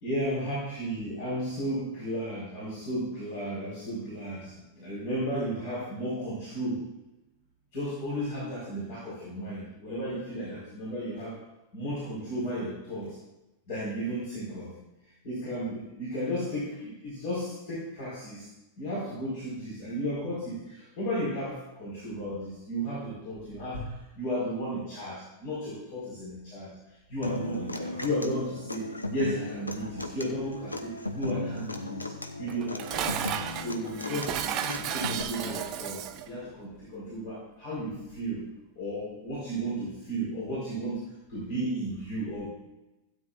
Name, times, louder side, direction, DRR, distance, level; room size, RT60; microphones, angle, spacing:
voice 1, 0.0-6.8 7.7-11.4 11.7-13.2 13.7-14.7 15.2-18.5 18.8-26.7 27.1-32.1 32.4-33.1 33.5-38.5 38.8-41.0 41.3-42.5, equal, 50° left, -7 dB, 4.3 m, -34 dB
Human voice / Acoustic guitar, 27.2-35.2, left 2 dB, 80° left, 0.8 m, -36 dB
Dishes pots and pans, 32.5-36.3, right 10 dB, 35° right, 0.7 m, -33 dB
16.0 x 9.1 x 2.5 m, 0.99 s
figure-of-eight pair, 90°, 0 cm